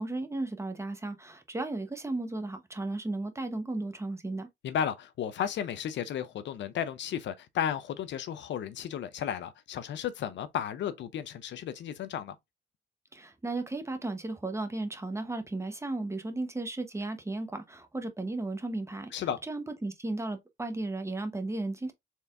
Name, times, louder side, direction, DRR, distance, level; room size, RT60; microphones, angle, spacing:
voice 1, 0.0-4.5 13.1-21.9, right 2 dB, 15° right, 0.9 m, -35 dB
voice 2, 4.6-12.4 19.1-19.4, left 9 dB, 65° left, 0.6 m, -33 dB
4.3 x 3.4 x 2.4 m
cardioid pair, 90°, 20 cm